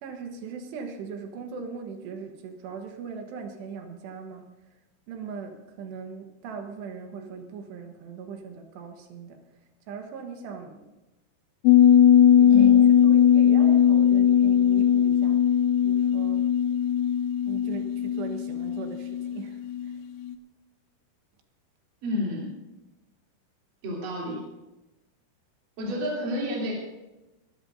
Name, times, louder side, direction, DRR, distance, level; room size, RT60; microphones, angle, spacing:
voice 1, 0.0-4.5 5.1-9.4 9.9-10.9 12.2-15.4 15.8-16.5 17.5-20.0 25.8-26.0, right 5 dB, 75° right, 4 dB, 3.3 m, -40 dB
sound 1, 11.7-19.9 20.3-20.4, left 9 dB, 80° left, 2.6 m, -19 dB
voice 2, 12.5-12.8 22.0-22.5 23.8-24.4 25.8-26.7, left 1 dB, 50° right, -5 dB, 4.7 m, -29 dB
23.5 x 13.5 x 2.7 m, 1.0 s
omnidirectional pair, 5.0 m